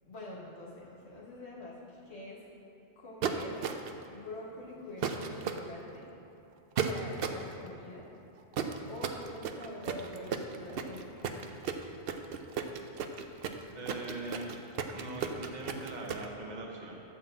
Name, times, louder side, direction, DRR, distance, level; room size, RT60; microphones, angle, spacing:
voice 1, 0.0-2.5 3.0-3.6 4.1-6.1 6.9-8.1 8.9-11.4, left 1 dB, 80° left, -5 dB, 1.7 m, -45 dB
sound 1, 3.2-4.0 5.0-5.6 6.8-7.5 8.5-16.3, right 7 dB, 65° right, 0.8 m, -34 dB
voice 2, 13.7-14.5 14.9-17.0, right 2 dB, 45° right, 0 dB, 1.2 m, -41 dB
12.5 x 4.5 x 7.5 m, 2.9 s
omnidirectional pair, 1.1 m